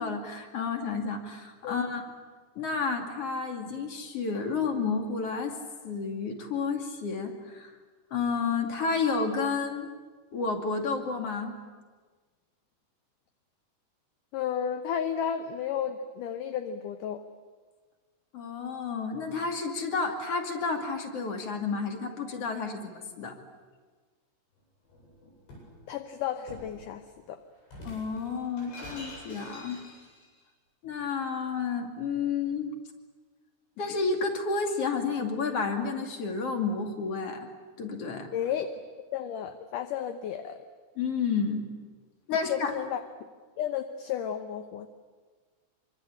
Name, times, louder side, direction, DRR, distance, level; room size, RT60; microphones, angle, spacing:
voice 1, 0.0-2.1 2.6-5.6 5.8-7.7 8.1-9.9 10.3-11.5 18.3-23.3 27.8-29.8 30.8-32.7 33.8-37.5 37.8-38.3 41.0-41.7 42.3-42.7, left 4 dB, 40° left, 4 dB, 3.1 m, -31 dB
voice 2, 14.3-17.2 25.9-27.4 38.3-38.7 39.1-40.6 42.3-43.0 43.6-44.9, left 9 dB, 70° left, 8 dB, 2.3 m, -32 dB
Shatter, 24.9-25.7 26.5-26.8 27.6-30.3, equal, 85° left, 10.5 m, -46 dB
25.5 x 25.0 x 8.6 m, 1.4 s
omnidirectional pair, 4.5 m